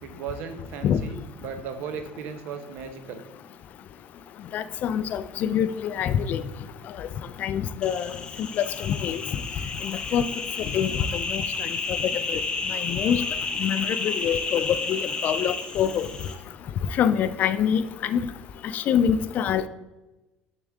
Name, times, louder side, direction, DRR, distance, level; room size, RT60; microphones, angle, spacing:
voice 1, 0.0-3.2, right 6 dB, 65° right, 8 dB, 0.8 m, -36 dB
voice 2, 4.5-6.4 7.0-7.1 7.4-8.1 8.6-9.2 9.8-10.3 10.7-11.4 11.9-12.4 12.7-13.3 13.6-16.1 17.0-18.3 18.7-19.7, left 8 dB, 45° left, 13 dB, 0.4 m, -25 dB
sound 1, 7.8-16.3, left 4 dB, 25° left, 0.8 m, -31 dB
6.9 x 6.5 x 3.5 m, 1.1 s
cardioid pair, 145°, 4 cm